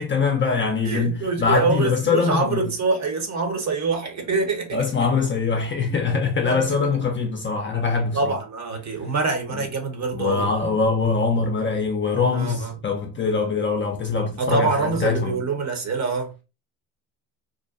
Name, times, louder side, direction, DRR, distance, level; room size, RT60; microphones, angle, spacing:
voice 1, 0.0-2.7 4.7-8.4 9.5-9.7 10.1-15.4, left 4 dB, 25° left, 0.4 m, -23 dB
voice 2, 0.8-4.8 6.5-6.8 8.1-10.5 12.3-12.7 14.4-16.3, right 4 dB, 35° right, 0.9 m, -25 dB
2.6 x 2.2 x 2.4 m
supercardioid pair, 70°, 46 cm